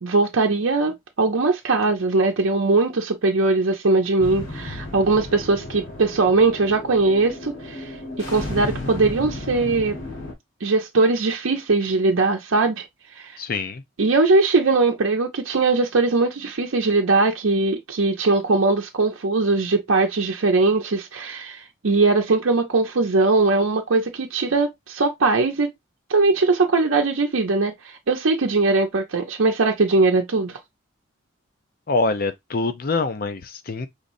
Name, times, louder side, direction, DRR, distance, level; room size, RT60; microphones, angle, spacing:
voice 1, 0.0-7.9 8.2-10.0 10.6-12.9 13.2-13.4 14.0-25.7 26.1-30.6, right 3 dB, 90° right, 0.7 m, -20 dB
sound 1, 4.2-10.3, left 2 dB, 85° left, 1.8 m, -33 dB
voice 2, 13.4-13.8 31.9-33.9, left 3 dB, 45° left, 0.5 m, -25 dB
5.1 x 3.1 x 2.6 m
head